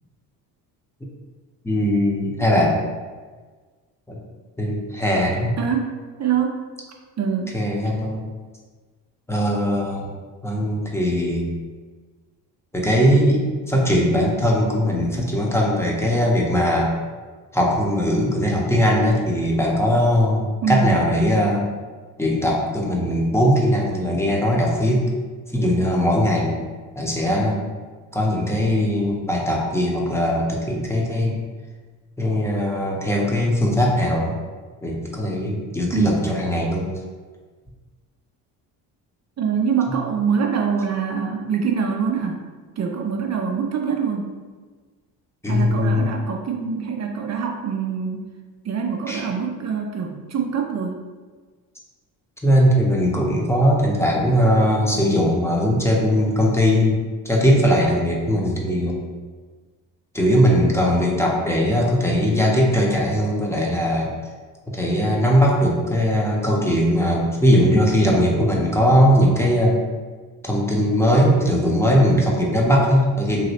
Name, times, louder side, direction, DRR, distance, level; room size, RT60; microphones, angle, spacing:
voice 1, 1.6-2.8 4.1-4.2 4.6-5.6 7.5-8.2 9.3-10.1 10.4-11.5 12.7-16.9 17.5-21.7 22.2-25.0 25.5-26.6 26.9-27.6 28.1-31.3 32.2-34.3 34.8-36.9 45.4-46.1 49.1-49.2 52.4-57.0 57.2-59.0 60.1-64.1 64.7-69.8 70.4-73.5, equal, 5° left, -3 dB, 0.8 m, -19 dB
voice 2, 5.6-5.9 6.2-6.6 7.2-7.6 20.6-20.9 35.9-36.2 39.4-42.4 42.8-44.3 45.5-48.3 48.6-50.9, right 6 dB, 35° right, 2 dB, 0.5 m, -24 dB
3.1 x 2.8 x 2.8 m, 1.4 s
hypercardioid pair, 60°, 48 cm